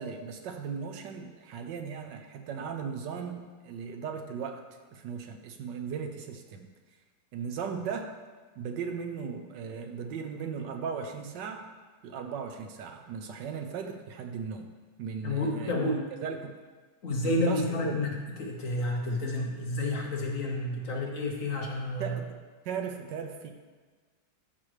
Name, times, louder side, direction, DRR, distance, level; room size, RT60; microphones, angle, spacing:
voice 1, 0.0-4.6 4.9-6.7 7.3-8.1 8.6-11.7 12.0-14.7 15.0-16.5 17.2-18.0 22.0-22.4 22.6-23.5, right 6 dB, 75° right, 5 dB, 1.4 m, -37 dB
voice 2, 15.2-16.0 17.0-18.1 18.4-22.2, left 2 dB, 55° left, 0 dB, 1.1 m, -30 dB
13.5 x 5.8 x 3.2 m, 1.4 s
omnidirectional pair, 2.0 m